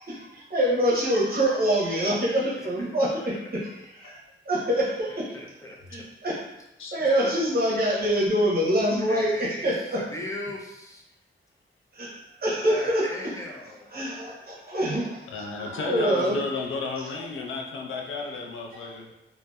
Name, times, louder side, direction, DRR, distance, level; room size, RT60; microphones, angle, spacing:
voice 1, 0.0-3.7 3.9-4.2 4.4-5.4 5.9-6.4 6.9-10.0 11.9-13.3 13.9-16.4 17.5-17.6 17.9-18.0, equal, 45° right, -4 dB, 0.8 m, -25 dB
voice 2, 5.3-6.1 9.1-11.0 12.7-13.9 16.0-16.2, left 1 dB, 15° left, -2 dB, 0.4 m, -38 dB
voice 3, 15.3-19.1, left 4 dB, 75° left, 0 dB, 0.4 m, -33 dB
2.7 x 2.1 x 2.2 m, 0.89 s
wide cardioid pair, 90°, 21 cm